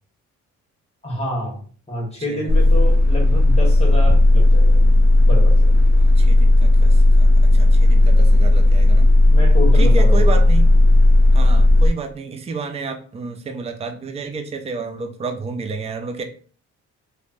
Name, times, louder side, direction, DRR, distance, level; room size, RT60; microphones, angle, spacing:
voice 1, 1.0-1.6 1.9-4.9 5.3-5.7 9.2-10.4, left 1 dB, 20° left, -2 dB, 1.2 m, -28 dB
voice 2, 2.3-2.6 6.0-9.1 9.7-10.7 11.3-16.2, right 4 dB, 20° right, 5 dB, 0.4 m, -30 dB
sound 1, 2.5-11.9, left 1 dB, 40° right, 0.8 m, -13 dB
3.0 x 2.2 x 2.5 m, 0.42 s
cardioid pair, 90°, 30 cm